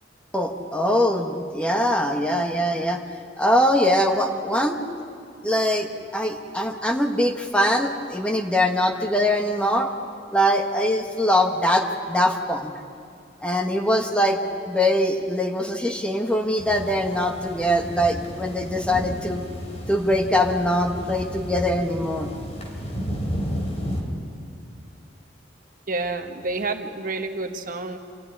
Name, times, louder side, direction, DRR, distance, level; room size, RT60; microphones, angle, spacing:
voice 1, 0.3-3.0 3.4-4.8 5.4-9.9 10.3-12.7 13.4-14.4 14.7-19.4 19.9-22.3, equal, 5° left, 3 dB, 1.3 m, -22 dB
sound 1, 16.6-24.0, equal, 35° left, 3.2 m, -32 dB
voice 2, 25.9-28.0, right 3 dB, 45° right, 6 dB, 1.2 m, -29 dB
26.5 x 14.5 x 9.9 m, 2.4 s
head